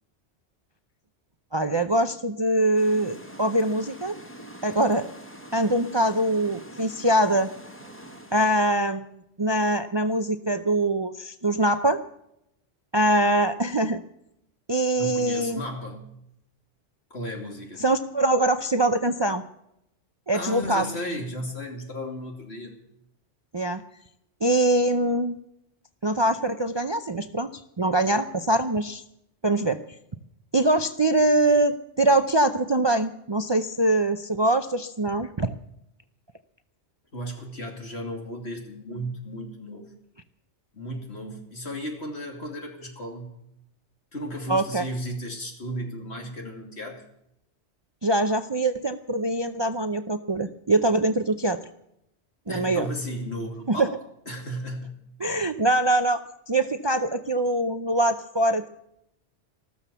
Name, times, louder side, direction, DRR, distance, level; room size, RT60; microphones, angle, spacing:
voice 1, 1.5-4.2 4.6-5.1 5.5-7.5 8.3-12.0 12.9-14.0 14.7-15.6 17.8-19.4 20.3-20.9 23.5-23.8 24.4-25.4 26.0-27.5 27.8-29.0 29.4-29.8 30.5-35.5 44.5-44.9 48.0-51.6 52.5-52.9 53.7-53.9 55.2-58.7, right 1 dB, 30° right, 9 dB, 0.5 m, -23 dB
sound 1, 2.8-8.5, right 1 dB, 10° left, 1.8 m, -44 dB
voice 2, 15.0-16.0 17.1-17.8 20.3-22.9 37.1-39.9 40.7-43.4 44.1-47.1 52.5-54.0 54.3-55.0, equal, 65° left, 2 dB, 3.0 m, -34 dB
14.0 x 13.5 x 6.9 m, 0.79 s
omnidirectional pair, 1.2 m